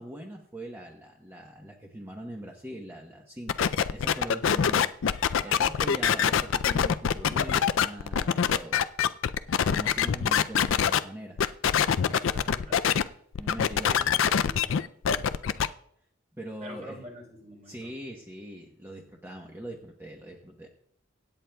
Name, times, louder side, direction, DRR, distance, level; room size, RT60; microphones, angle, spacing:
voice 1, 0.0-8.8 9.7-11.4 13.4-13.9 16.4-17.0 17.7-20.7, right 1 dB, 10° right, 0 dB, 1.0 m, -41 dB
sound 1, 3.5-11.0 11.4-13.0 13.3-15.7, left 8 dB, 65° left, 0.4 m, -24 dB
voice 2, 5.4-6.6 12.1-12.8 13.4-13.6 13.8-14.7 16.6-17.9, equal, 40° right, 0 dB, 3.4 m, -47 dB
24.5 x 9.1 x 2.3 m, 0.70 s
head